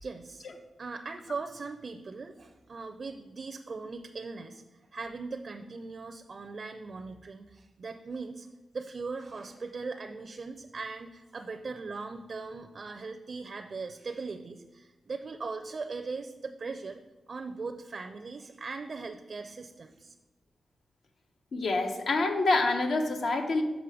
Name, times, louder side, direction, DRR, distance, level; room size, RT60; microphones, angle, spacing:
voice 1, 0.0-0.5 0.8-8.5 8.7-17.0 17.3-20.1, right 4 dB, 55° right, 6 dB, 0.4 m, -39 dB
voice 2, 21.5-23.6, left 3 dB, 75° left, 5 dB, 0.9 m, -27 dB
6.0 x 5.4 x 4.9 m, 1.1 s
cardioid pair, 80°, 0 cm